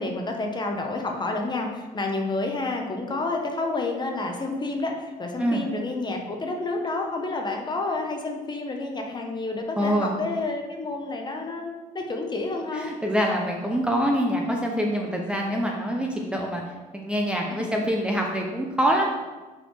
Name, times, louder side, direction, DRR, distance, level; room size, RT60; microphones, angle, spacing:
voice 1, 0.0-12.9 17.4-17.7, left 2 dB, 25° left, 2 dB, 0.9 m, -29 dB
voice 2, 9.8-10.2 12.7-16.6 16.9-19.1, equal, 5° right, 0 dB, 0.7 m, -25 dB
5.5 x 4.2 x 4.5 m, 1.2 s
cardioid pair, 110°, 17 cm